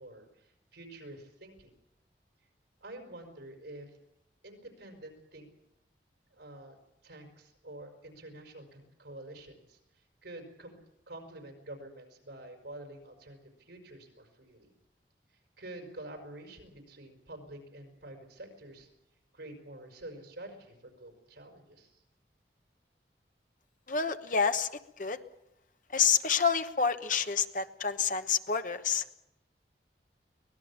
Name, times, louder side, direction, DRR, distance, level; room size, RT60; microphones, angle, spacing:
voice 1, 0.0-1.7 2.8-4.0 4.4-5.5 6.3-10.8 11.1-14.7 15.3-18.9 19.3-22.0, right 1 dB, 85° right, 4 dB, 5.4 m, -48 dB
voice 2, 23.9-24.7 25.0-25.2 25.9-29.2, left 6 dB, 45° left, 9 dB, 1.1 m, -28 dB
24.0 x 19.0 x 7.3 m, 0.85 s
head